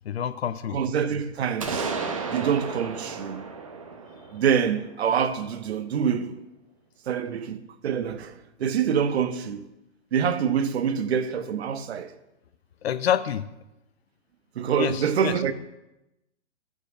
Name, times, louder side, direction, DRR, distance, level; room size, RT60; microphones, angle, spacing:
voice 1, 0.0-0.8 12.8-13.5 14.8-15.5, left 9 dB, 60° left, 0.5 m, -27 dB
voice 2, 0.7-1.9 2.3-3.4 4.3-6.4 7.1-9.7 10.1-12.1 14.6-15.5, right 7 dB, 60° right, 0.7 m, -26 dB
sound 1, 1.6-5.4, right 4 dB, 30° right, 0.4 m, -33 dB
8.6 x 5.4 x 4.8 m
hypercardioid pair, 175°, 36 cm